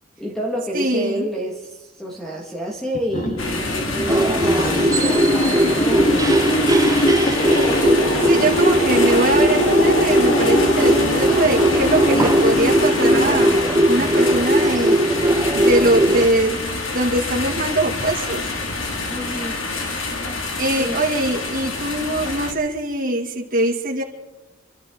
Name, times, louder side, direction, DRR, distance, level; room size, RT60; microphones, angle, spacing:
voice 1, 0.2-6.6 19.1-19.6 20.8-21.0, equal, 5° left, -2 dB, 2.0 m, -29 dB
voice 2, 0.7-1.3 8.2-13.5 13.9-15.2 15.5-16.6 16.9-18.5 20.6-24.0, right 1 dB, 45° right, -6 dB, 2.4 m, -22 dB
sound 1, 2.9-14.1, equal, 40° left, 2.0 m, -22 dB
sound 2, 3.4-22.5, left 3 dB, 85° left, 2.5 m, -27 dB
sound 3, 4.1-16.3, right 1 dB, 20° right, 0.6 m, -19 dB
27.5 x 13.0 x 3.9 m, 1.1 s
head